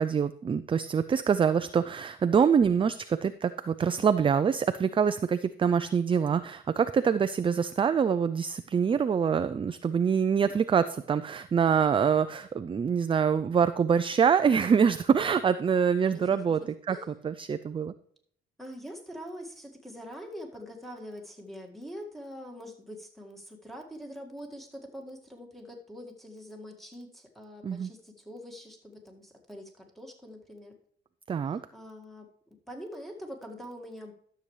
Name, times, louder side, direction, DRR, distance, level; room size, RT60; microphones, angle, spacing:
voice 1, 0.0-16.6 16.9-17.0 17.2-17.9 27.6-27.9 31.3-31.6, right 6 dB, 25° right, 11 dB, 0.4 m, -25 dB
voice 2, 18.6-30.7 31.4-32.3 32.7-34.1, equal, ahead, 1 dB, 1.9 m, -44 dB
12.5 x 6.9 x 3.2 m, 0.63 s
cardioid pair, 90°, 20 cm